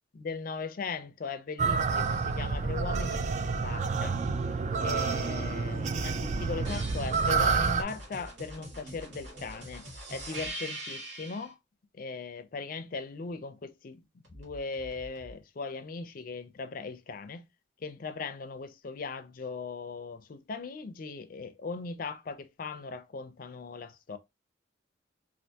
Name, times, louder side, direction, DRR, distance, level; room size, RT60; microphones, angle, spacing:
voice 1, 0.1-4.2 4.8-9.8 10.1-11.5 12.0-17.4 17.8-24.2, left 4 dB, 50° left, 0.4 m, -39 dB
sound 1, 1.6-7.8, right 4 dB, 40° right, 0.3 m, -29 dB
sound 2, 6.6-11.5 14.2-15.3, right 1 dB, 70° right, 1.5 m, -43 dB
3.4 x 2.4 x 2.7 m
head